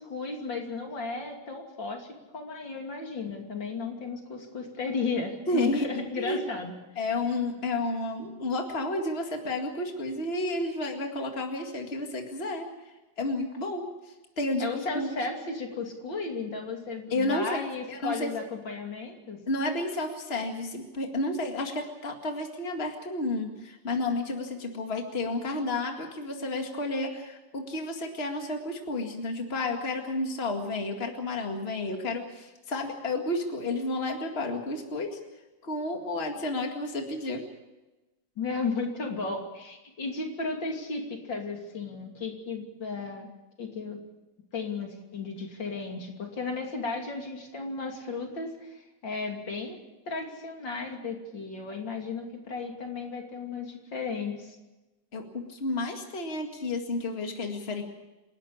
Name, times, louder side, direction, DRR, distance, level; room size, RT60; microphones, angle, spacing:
voice 1, 0.0-2.1 2.3-6.7 14.6-19.4 38.4-43.3 43.6-44.0 44.5-49.8 50.1-54.6, left 4 dB, 80° left, 2 dB, 3.5 m, -34 dB
voice 2, 5.5-5.9 6.2-6.4 7.0-12.7 13.2-13.9 14.4-15.1 17.1-18.3 19.5-35.2 35.6-37.4 55.1-57.8, left 2 dB, 35° left, 3 dB, 2.3 m, -31 dB
28.0 x 12.5 x 8.7 m, 1.1 s
omnidirectional pair, 2.0 m